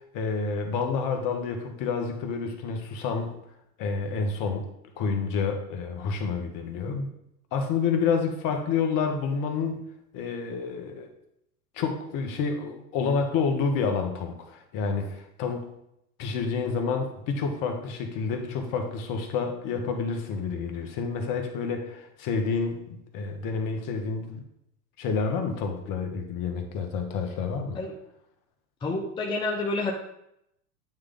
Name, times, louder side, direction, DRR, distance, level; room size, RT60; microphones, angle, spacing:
voice 1, 0.1-3.4 3.8-4.6 5.0-7.1 7.5-9.8 10.1-11.1 11.7-15.7 16.2-24.4 25.0-27.8, left 5 dB, 45° left, 5 dB, 1.2 m, -29 dB
voice 2, 28.8-29.9, left 2 dB, 10° left, 0 dB, 0.5 m, -28 dB
8.9 x 3.2 x 3.8 m, 0.80 s
hypercardioid pair, 100°, 47 cm